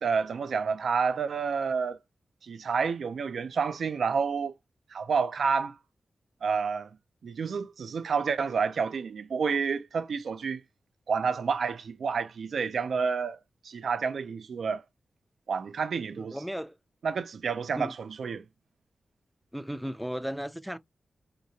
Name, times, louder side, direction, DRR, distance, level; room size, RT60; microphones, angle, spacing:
voice 1, 0.0-2.0 2.4-4.5 4.9-5.8 6.4-6.9 7.2-10.6 11.1-13.4 13.6-14.8 15.5-16.4 17.0-18.4, right 5 dB, 80° right, 0.4 m, -29 dB
voice 2, 16.1-16.8 17.7-17.9 19.5-20.8, equal, ahead, 0.3 m, -35 dB
3.2 x 2.9 x 2.7 m
wide cardioid pair, 130°, 0 cm